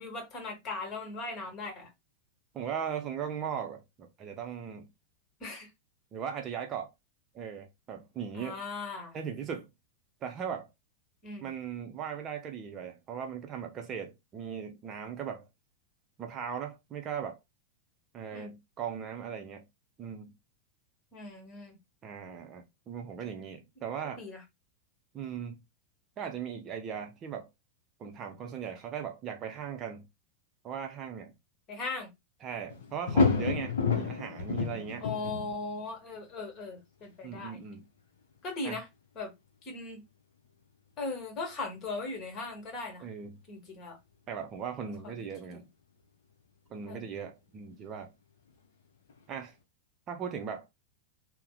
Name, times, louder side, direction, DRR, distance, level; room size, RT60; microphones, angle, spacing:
voice 1, 0.0-1.9 5.4-5.7 8.3-9.2 11.2-11.5 18.3-18.5 21.1-21.8 24.2-24.4 31.7-32.1 35.0-37.6 38.4-38.9 39.1-39.3 39.6-40.0 41.0-43.0 43.5-44.0 45.0-45.1 46.9-47.1, left 3 dB, 35° left, 1.3 m, -38 dB
voice 2, 2.5-4.9 6.1-6.9 7.3-8.6 9.1-9.7 10.2-10.7 11.4-15.5 16.2-17.4 18.1-19.6 20.0-20.3 22.0-24.2 25.1-25.6 26.2-27.5 28.0-30.0 30.6-31.3 32.4-35.0 37.2-37.8 38.6-38.8 43.0-43.4 44.3-45.7 46.7-48.1 49.3-49.5 50.1-50.6, right 7 dB, 30° right, 0.6 m, -38 dB
sound 1, 32.7-35.9 37.0-37.1 49.1-49.2, left 4 dB, 60° left, 0.7 m, -29 dB
2.7 x 2.1 x 3.8 m
figure-of-eight pair, 90°, 0 cm